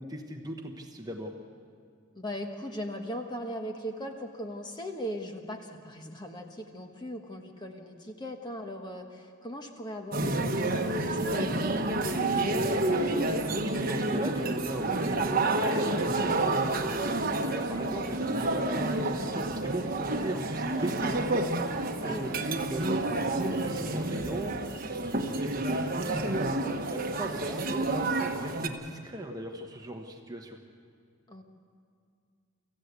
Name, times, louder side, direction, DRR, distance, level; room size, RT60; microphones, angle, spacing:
voice 1, 0.0-1.3 13.6-21.5 22.0-26.5 26.9-30.6, right 1 dB, 20° right, 3 dB, 1.1 m, -38 dB
voice 2, 2.1-12.1 22.0-22.5 27.3-27.6 31.3-31.4, equal, 20° left, 4 dB, 1.4 m, -39 dB
sound 1, 10.1-28.7, right 2 dB, 40° right, 1.2 m, -29 dB
25.0 x 15.0 x 8.2 m, 2.3 s
head